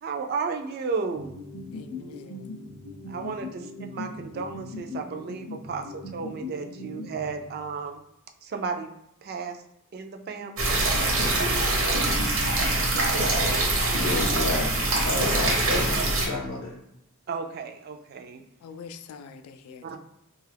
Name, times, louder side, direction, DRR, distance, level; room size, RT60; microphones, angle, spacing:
voice 1, 0.0-1.3 3.1-8.0 8.4-8.9 9.2-9.6 9.9-10.8 17.3-18.4 19.8-20.0, right 5 dB, 45° right, 5 dB, 0.3 m, -33 dB
sound 1, 1.2-7.9, left 2 dB, 25° left, 0.5 m, -39 dB
voice 2, 1.7-2.5 18.6-20.0, left 5 dB, 85° left, 9 dB, 0.3 m, -45 dB
sound 2, 10.6-16.3, right 2 dB, 65° right, 0.7 m, -24 dB
voice 3, 14.0-14.8 15.0-16.7, left 2 dB, 65° left, -3 dB, 0.7 m, -31 dB
3.0 x 2.3 x 3.3 m, 0.79 s
head